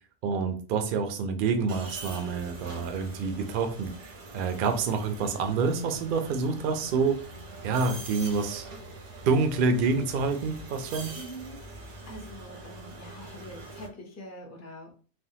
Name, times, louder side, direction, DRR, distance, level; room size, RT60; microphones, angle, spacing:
voice 1, 0.2-7.3 7.6-8.7 9.2-11.1, right 4 dB, 60° right, 6 dB, 0.6 m, -27 dB
sound 1, 1.7-13.9, right 2 dB, 80° right, 1.1 m, -44 dB
voice 2, 11.2-14.9, equal, 20° left, 0 dB, 0.5 m, -44 dB
3.4 x 2.2 x 2.7 m, 0.39 s
omnidirectional pair, 1.2 m